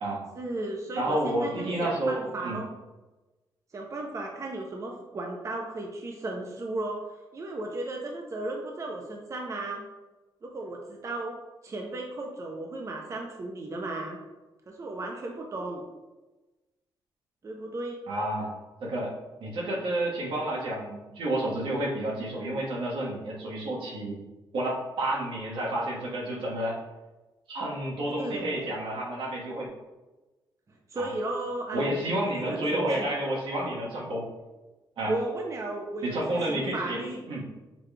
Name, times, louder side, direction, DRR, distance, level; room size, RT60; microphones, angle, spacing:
voice 1, 0.3-2.7 3.7-7.0 7.3-9.8 10.4-11.3 11.6-14.2 14.7-15.8 17.4-18.0 28.2-28.7 30.9-33.1 35.0-37.3, right 2 dB, 35° right, 1 dB, 0.6 m, -35 dB
voice 2, 1.0-2.6 18.1-18.5 18.8-19.1 19.4-24.2 24.5-26.8 27.5-29.7 31.0-31.1 31.7-34.2 35.0-35.1 36.0-37.0 37.3-37.4, right 1 dB, 85° right, -4 dB, 1.3 m, -30 dB
5.9 x 2.3 x 3.2 m, 1.1 s
cardioid pair, 90°, 9 cm